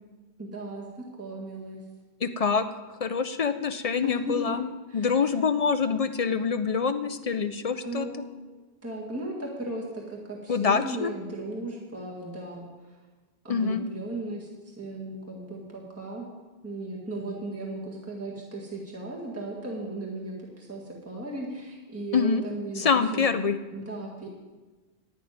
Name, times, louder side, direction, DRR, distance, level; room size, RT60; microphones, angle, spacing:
voice 1, 0.4-1.8 4.0-4.6 4.9-5.4 7.8-8.4 8.8-12.9 13.4-16.3 16.6-23.3 23.7-24.3, right 2 dB, 15° right, -3 dB, 1.8 m, -36 dB
voice 2, 2.2-2.7 3.0-4.7 4.9-8.1 10.5-11.1 13.5-13.8 22.1-22.4 22.8-23.6, left 5 dB, 45° left, 10 dB, 0.5 m, -25 dB
11.0 x 6.1 x 9.2 m, 1.3 s
omnidirectional pair, 1.1 m